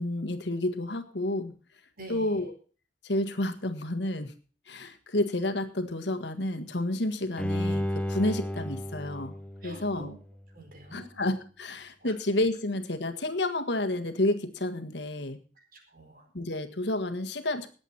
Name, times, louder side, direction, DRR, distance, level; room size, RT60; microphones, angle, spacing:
voice 1, 0.0-1.5 2.1-2.5 3.0-4.3 4.7-9.4 9.6-10.1 10.9-15.4 16.3-17.7, left 1 dB, 70° left, 9 dB, 1.6 m, -30 dB
voice 2, 2.0-2.5 9.6-10.2 10.5-11.2 12.0-12.1 15.6-16.3, right 2 dB, 50° right, 4 dB, 4.3 m, -47 dB
Bowed string instrument, 7.4-10.5 10.9-11.0, left 1 dB, 5° left, 1.1 m, -33 dB
19.5 x 8.2 x 4.4 m, 0.38 s
head